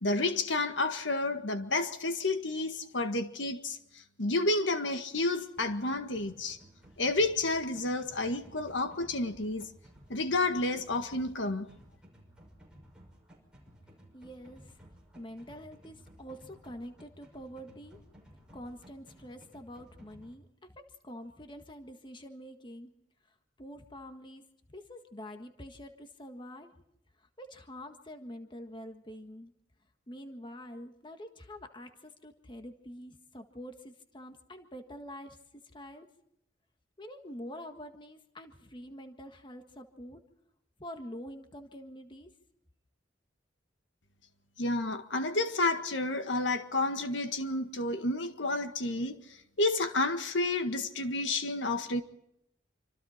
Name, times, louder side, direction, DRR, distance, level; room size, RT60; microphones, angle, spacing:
voice 1, 0.0-3.8 4.2-6.6 7.0-9.7 10.1-11.7 44.6-49.2 49.6-52.0, left 2 dB, 85° left, 1.7 m, -30 dB
sound 1, 5.6-20.3, equal, 5° right, 5.9 m, -56 dB
voice 2, 14.1-14.7 15.1-18.0 18.5-20.5 20.7-22.9 23.6-24.4 24.7-26.7 27.4-29.5 30.1-35.4 35.7-36.1 37.0-40.2 40.8-42.3, equal, 25° left, 1.6 m, -46 dB
27.0 x 25.5 x 4.4 m
head